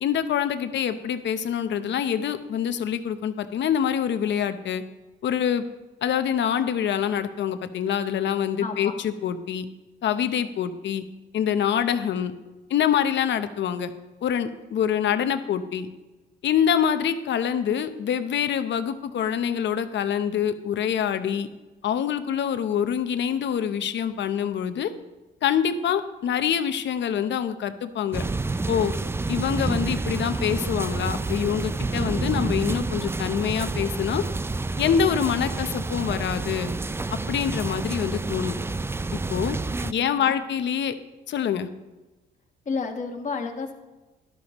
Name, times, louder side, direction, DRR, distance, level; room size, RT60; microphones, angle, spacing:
voice 1, 0.0-4.8 5.2-5.6 6.0-9.7 10.0-11.0 11.3-12.3 12.7-13.9 14.2-15.9 16.4-21.5 21.8-24.9 25.4-28.2 28.7-28.9 29.3-34.2 34.8-36.7 37.3-38.5 39.1-39.6 39.9-40.9 41.3-41.7, left 8 dB, 65° left, 10 dB, 0.9 m, -25 dB
voice 2, 8.6-8.9 39.8-40.4 42.6-43.7, left 4 dB, 40° left, 2 dB, 1.4 m, -31 dB
sound 1, 28.1-39.9, right 3 dB, 10° right, 0.3 m, -29 dB
12.5 x 12.0 x 3.1 m, 1.1 s
cardioid pair, 90°, 20 cm